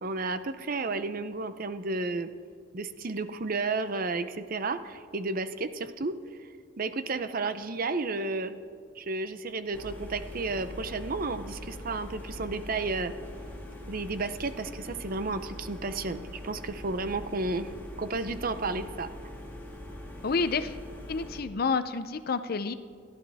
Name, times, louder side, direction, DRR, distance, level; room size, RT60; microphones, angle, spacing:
voice 1, 0.0-2.3 2.7-6.1 6.8-8.5 9.0-13.1 13.9-17.7 18.0-19.1, right 3 dB, 45° right, 11 dB, 0.7 m, -32 dB
sound 1, 9.7-21.4, left 1 dB, 10° left, 1.9 m, -42 dB
voice 2, 20.2-20.8 21.1-22.7, left 4 dB, 50° left, 12 dB, 0.6 m, -29 dB
29.0 x 12.0 x 3.5 m, 2.1 s
head